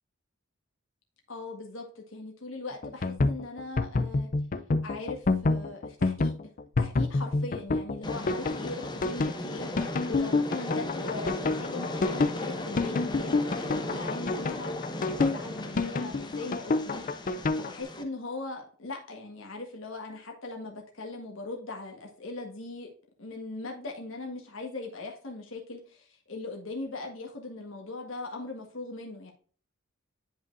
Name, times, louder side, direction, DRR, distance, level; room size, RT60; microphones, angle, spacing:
voice 1, 1.3-4.3 4.8-6.3 6.8-22.9 23.2-29.3, left 2 dB, 75° left, 2 dB, 1.5 m, -39 dB
sound 1, 2.8-17.7, left 3 dB, 40° left, 0.5 m, -28 dB
Train, 8.0-18.0, left 1 dB, 20° left, 0.9 m, -36 dB
9.9 x 5.3 x 2.5 m, 0.43 s
head